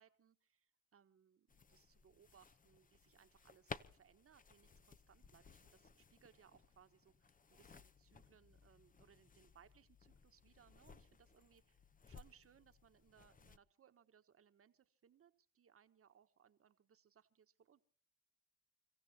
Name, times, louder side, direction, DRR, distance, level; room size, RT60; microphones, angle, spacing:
voice 1, 0.0-11.8 12.1-17.8, right 8 dB, 45° right, 9 dB, 1.3 m, -69 dB
sound 1, 1.5-13.6, left 5 dB, 25° left, 0.8 m, -59 dB
29.5 x 15.5 x 2.9 m, 0.43 s
cardioid pair, 90°, 30 cm